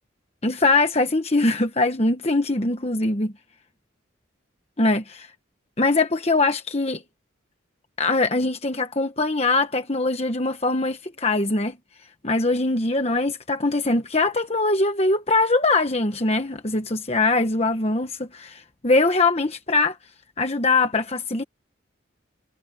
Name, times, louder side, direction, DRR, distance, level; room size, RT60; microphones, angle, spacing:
voice 1, 0.4-3.3 4.8-5.3 5.8-7.0 8.0-11.8 12.2-20.0 20.4-21.4, left 2 dB, 30° left, 1.2 m, -22 dB
head